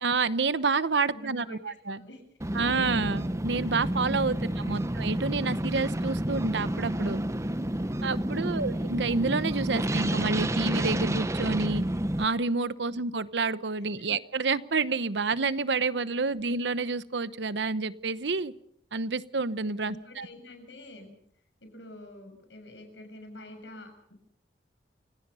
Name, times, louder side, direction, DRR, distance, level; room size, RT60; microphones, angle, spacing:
voice 1, 0.0-2.0 2.5-7.2 8.0-11.8 12.2-18.5 18.9-20.3, right 4 dB, 70° right, 15 dB, 0.9 m, -29 dB
voice 2, 1.1-2.5 8.2-8.7 12.9-13.0 14.0-14.1 19.7-21.1 21.6-24.1, left 1 dB, 80° left, 6 dB, 6.8 m, -48 dB
sound 1, 2.4-12.2, right 1 dB, 15° right, 0.8 m, -30 dB
29.5 x 17.5 x 5.6 m, 0.69 s
head